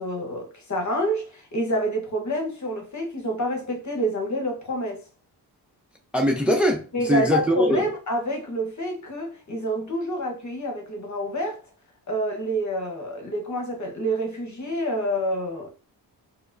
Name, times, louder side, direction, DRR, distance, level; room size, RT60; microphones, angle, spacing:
voice 1, 0.0-5.0 6.9-11.6 12.1-15.7, equal, 40° left, 1.2 m, -28 dB
voice 2, 6.1-7.8, equal, 5° right, 0.8 m, -21 dB
4.4 x 2.2 x 2.6 m
cardioid pair, 60°, 43 cm